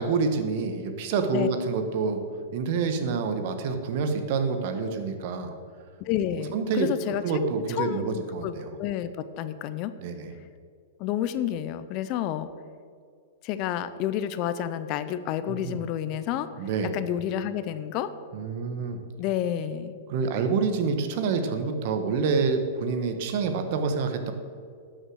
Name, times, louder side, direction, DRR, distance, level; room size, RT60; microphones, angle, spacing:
voice 1, 0.0-2.2 2.5-5.5 6.5-6.9 7.2-8.8 10.0-10.3 15.5-15.8 16.6-16.9 18.3-19.0 20.1-24.3, right 5 dB, 55° right, 7 dB, 1.4 m, -27 dB
voice 2, 6.0-9.9 11.0-12.5 13.4-16.5 16.9-18.1 19.2-19.9, left 10 dB, 45° left, 12 dB, 0.6 m, -30 dB
12.0 x 6.5 x 6.5 m, 2.2 s
hypercardioid pair, 130°, 0 cm